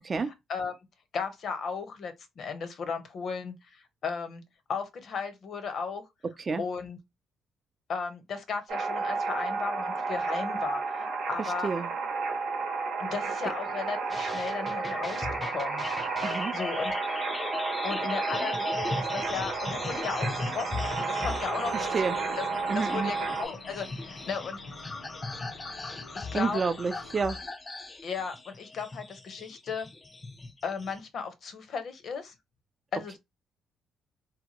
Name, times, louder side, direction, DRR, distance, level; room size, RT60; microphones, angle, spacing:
voice 1, 0.3-0.7 1.1-4.4 4.7-6.0 6.6-7.0 7.9-11.7 13.0-15.9 16.5-17.2 17.8-21.9 22.4-22.5 22.7-24.6 26.1-26.6 28.0-29.9 30.6-32.3 32.9-33.2, left 5 dB, 60° left, 0.7 m, -35 dB
sound 1, 8.7-23.4, right 4 dB, 85° right, 0.8 m, -32 dB
sound 2, 14.1-31.0, left 3 dB, 25° left, 0.4 m, -38 dB
voice 2, 16.2-16.5 21.7-22.2 22.7-23.1 26.3-27.4, right 5 dB, 35° right, 0.4 m, -29 dB
sound 3, 20.5-27.4, left 4 dB, 90° left, 1.0 m, -48 dB
2.8 x 2.2 x 2.8 m
cardioid pair, 90°, 0 cm